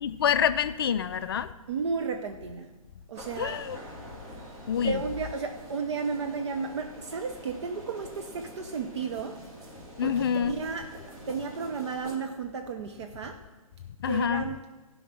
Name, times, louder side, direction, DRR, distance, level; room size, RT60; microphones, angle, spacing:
voice 1, 0.0-1.5 3.4-3.8 4.7-5.0 10.0-10.6 14.0-14.5, left 8 dB, 40° left, 0.4 m, -27 dB
voice 2, 1.7-2.7 3.1-3.6 4.8-9.4 10.0-10.9 11.3-13.4 14.0-14.6, right 5 dB, 50° right, 0.8 m, -33 dB
sound 1, 3.1-12.2, right 1 dB, 30° right, 2.1 m, -46 dB
15.5 x 5.6 x 6.2 m
figure-of-eight pair, 135°, 18 cm